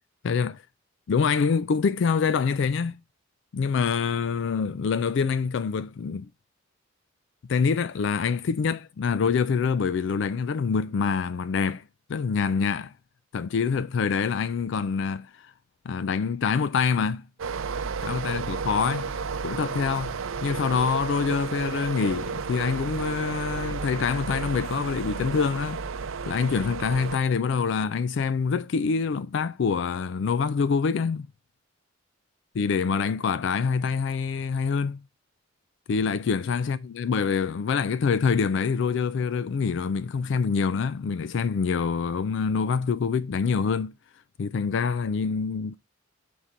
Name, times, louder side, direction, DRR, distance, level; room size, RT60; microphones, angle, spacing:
voice 1, 0.2-0.6 1.1-3.0 3.5-6.3 7.5-11.8 12.1-12.9 13.3-15.5 15.9-17.2 18.0-19.1 19.4-25.8 26.3-31.3 32.6-35.0 35.9-43.9 44.4-45.7, left 5 dB, 65° left, 0.3 m, -25 dB
sound 1, 17.4-27.2, right 5 dB, 85° right, 0.5 m, -32 dB
5.7 x 4.7 x 3.7 m
head